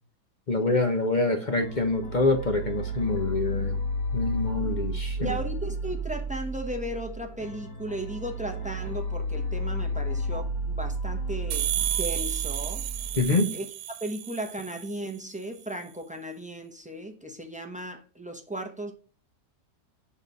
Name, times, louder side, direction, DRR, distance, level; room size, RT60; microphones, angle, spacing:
voice 1, 0.5-3.8 4.1-5.4 13.2-13.5, left 2 dB, 35° left, 0.8 m, -25 dB
sound 1, 1.5-13.3, right 1 dB, 60° left, 1.9 m, -32 dB
voice 2, 5.2-11.7 12.0-12.8 13.5-18.9, right 1 dB, 5° right, 0.6 m, -36 dB
sound 2, 11.5-15.1, right 11 dB, 90° right, 1.2 m, -32 dB
6.2 x 3.8 x 5.3 m
omnidirectional pair, 1.8 m